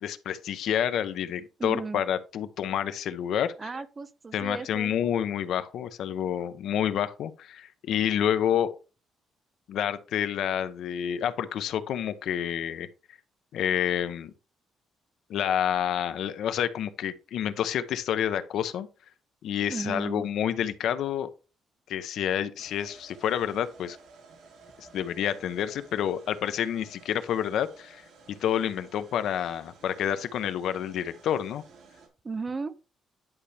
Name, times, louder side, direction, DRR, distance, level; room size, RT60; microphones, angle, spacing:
voice 1, 0.0-3.7 4.3-8.7 9.7-12.9 13.5-14.3 15.3-18.9 19.4-21.3 21.9-24.0 24.8-28.0 28.3-31.6, left 9 dB, 65° left, 0.8 m, -29 dB
voice 2, 1.6-2.0 3.6-5.1 19.7-20.2 32.2-32.8, right 4 dB, 20° right, 0.5 m, -35 dB
sound 1, 22.6-32.1, right 4 dB, 65° right, 3.2 m, -54 dB
11.0 x 5.7 x 3.3 m
cardioid pair, 180°, 0 cm